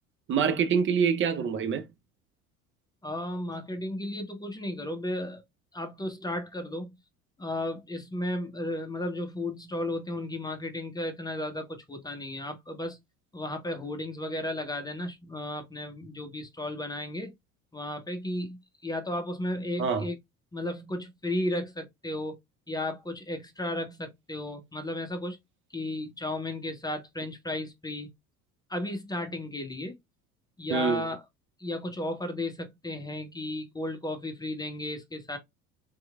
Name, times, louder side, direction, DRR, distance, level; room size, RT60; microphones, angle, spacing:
voice 1, 0.3-1.9 19.8-20.0 30.7-31.1, right 6 dB, 30° right, 0.7 m, -25 dB
voice 2, 3.0-5.4 5.7-6.9 7.4-13.0 13.3-17.3 17.7-20.2 20.5-22.4 22.7-25.4 25.7-28.1 28.7-29.9 30.6-31.2 31.6-35.4, left 1 dB, 10° left, 0.8 m, -34 dB
3.4 x 3.0 x 2.2 m
figure-of-eight pair, 65°, 43 cm